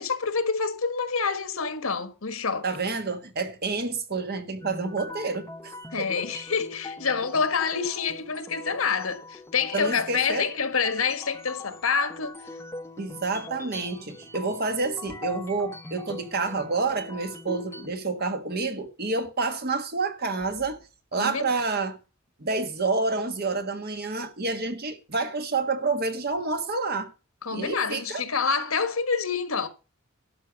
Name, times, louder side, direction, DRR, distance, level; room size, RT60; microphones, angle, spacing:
voice 1, 0.0-2.7 5.9-12.4 21.2-21.6 27.4-29.7, left 5 dB, 85° left, 1.4 m, -27 dB
voice 2, 2.6-6.2 9.7-10.5 13.0-20.8 21.1-22.0 22.4-27.1 27.5-28.2, right 3 dB, 50° right, 1.5 m, -29 dB
sound 1, 4.6-17.9, left 2 dB, 15° left, 0.8 m, -41 dB
12.0 x 4.8 x 7.4 m
head